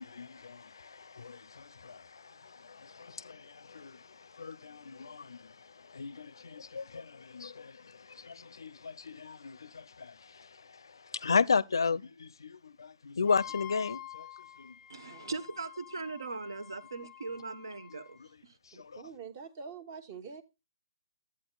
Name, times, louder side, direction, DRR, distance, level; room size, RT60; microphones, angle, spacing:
voice 1, 0.0-14.3 14.6-14.7 17.9-18.3 18.7-19.0, left 5 dB, 80° left, 0.4 m, -35 dB
Wind instrument woodwind instrument, 13.3-18.2, left 12 dB, 20° left, 0.4 m, -48 dB
voice 2, 14.9-18.2 18.4-18.6, right 3 dB, 80° right, 1.0 m, -39 dB
voice 3, 18.7-20.4, right 6 dB, 35° right, 1.1 m, -45 dB
11.5 x 8.4 x 2.2 m
hypercardioid pair, 145°, 2 cm